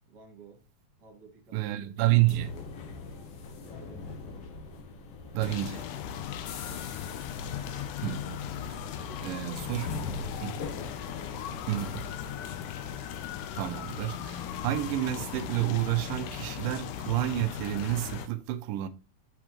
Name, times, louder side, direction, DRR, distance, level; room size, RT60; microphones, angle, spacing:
voice 1, 0.1-0.6 1.0-3.0 3.6-4.3 6.6-7.0 9.0-10.8 11.1-12.6, right 4 dB, 35° right, 2.5 m, -55 dB
voice 2, 1.5-2.5 5.3-5.9 8.0-8.5 9.2-9.9 10.4-10.5 11.7-12.0 13.6-18.9, right 16 dB, 85° right, 2.4 m, -29 dB
sound 1, 2.0-12.1, left 4 dB, 60° left, 1.8 m, -42 dB
sound 2, 5.4-18.3, left 9 dB, 75° left, 2.2 m, -38 dB
9.0 x 6.3 x 3.0 m
omnidirectional pair, 3.8 m